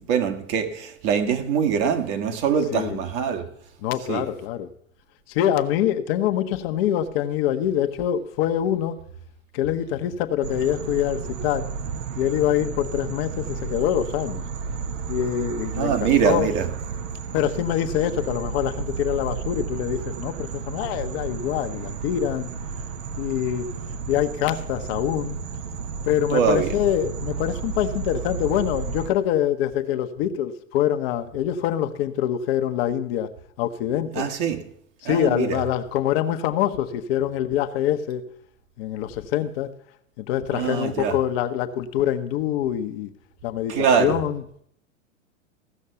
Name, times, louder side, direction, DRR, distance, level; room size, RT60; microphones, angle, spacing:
voice 1, 0.1-3.5 4.1-4.2 15.8-16.7 26.3-26.7 34.1-34.6 35.1-35.6 40.5-41.1 43.7-44.2, right 7 dB, 45° right, 1.8 m, -23 dB
voice 2, 2.7-3.0 3.8-4.7 5.3-9.0 9.5-11.6 12.1-14.4 15.1-16.5 17.3-22.5 23.2-23.7 24.1-25.4 26.0-33.3 33.6-34.3 35.0-38.2 38.8-39.7 40.2-43.1 43.4-44.4, left 11 dB, 50° left, 1.0 m, -25 dB
sound 1, 10.4-29.1, right 6 dB, 65° right, 1.3 m, -32 dB
15.5 x 6.4 x 6.9 m
hypercardioid pair, 100°, 39 cm